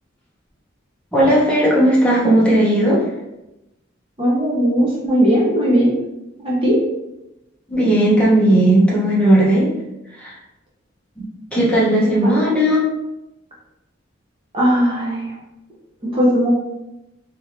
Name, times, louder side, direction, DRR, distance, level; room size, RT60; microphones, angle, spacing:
voice 1, 1.1-3.0 7.7-9.7 10.2-10.3 11.2-12.8, right 1 dB, 5° left, -6 dB, 0.9 m, -15 dB
voice 2, 4.2-6.0 6.4-6.8 12.2-12.3 14.5-15.3 16.0-16.5, equal, 25° right, -5 dB, 0.7 m, -17 dB
3.3 x 2.7 x 2.6 m, 0.93 s
head